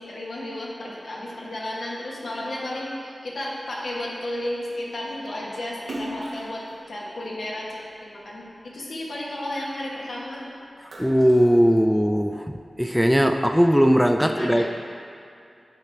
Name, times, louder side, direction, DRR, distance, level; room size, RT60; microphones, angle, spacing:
voice 1, 0.0-10.5 14.2-14.7, left 1 dB, 85° left, -4 dB, 1.1 m, -33 dB
Splash splatter, 5.8-8.3 8.8-10.3 10.6-12.3, right 1 dB, 90° right, 0.9 m, -39 dB
voice 2, 11.0-12.5 12.8-14.7, equal, ahead, 5 dB, 0.3 m, -19 dB
9.2 x 3.9 x 3.3 m, 2.5 s
cardioid pair, 50°, 0 cm